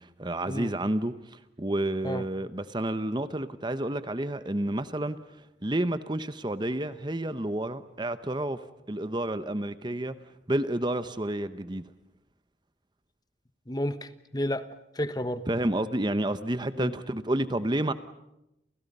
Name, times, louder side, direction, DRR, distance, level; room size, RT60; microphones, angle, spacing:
voice 1, 0.0-5.2 5.6-10.2 10.5-11.9 15.5-17.9, right 1 dB, 25° right, 0.9 m, -30 dB
voice 2, 13.7-14.6 15.0-15.4 16.8-16.9, left 1 dB, 20° left, 1.2 m, -31 dB
29.5 x 29.5 x 5.5 m
head